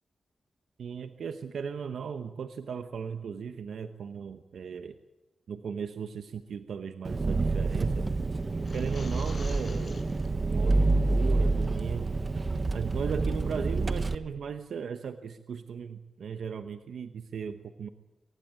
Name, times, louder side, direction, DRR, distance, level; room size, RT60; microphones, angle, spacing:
voice 1, 0.8-5.0 5.5-8.1 8.7-10.1 10.5-12.1 12.7-17.9, right 6 dB, 80° right, 9 dB, 1.0 m, -37 dB
Engine, 7.1-14.1, right 3 dB, 35° right, 1.1 m, -28 dB
sound 1, 8.5-10.3, left 3 dB, 45° left, 6.0 m, -47 dB
23.5 x 18.5 x 9.0 m, 1.1 s
wide cardioid pair, 100°, 0 cm